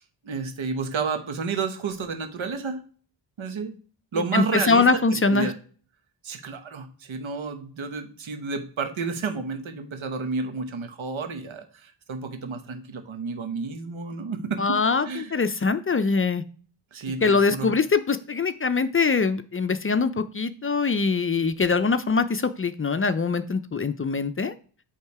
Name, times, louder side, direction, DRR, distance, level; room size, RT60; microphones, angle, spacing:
voice 1, 0.0-2.8 3.4-3.7 4.1-5.0 5.3-5.5 6.2-15.3 16.9-17.7, right 4 dB, 90° right, 7 dB, 1.3 m, -31 dB
voice 2, 4.1-5.5 14.6-16.4 17.2-24.5, left 4 dB, 30° left, 12 dB, 0.4 m, -23 dB
8.6 x 3.6 x 4.7 m, 0.43 s
wide cardioid pair, 120°, 46 cm